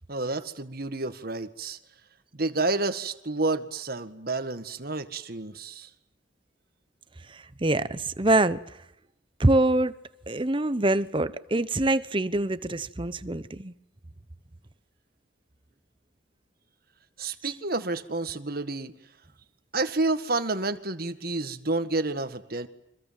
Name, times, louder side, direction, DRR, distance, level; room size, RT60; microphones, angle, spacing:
voice 1, 0.1-1.8 2.3-5.9 17.2-18.9 19.7-22.7, right 2 dB, 55° right, 1.9 m, -29 dB
voice 2, 7.6-8.6 9.4-10.0 10.3-13.7, right 2 dB, 25° right, 1.0 m, -24 dB
30.0 x 25.5 x 7.7 m
head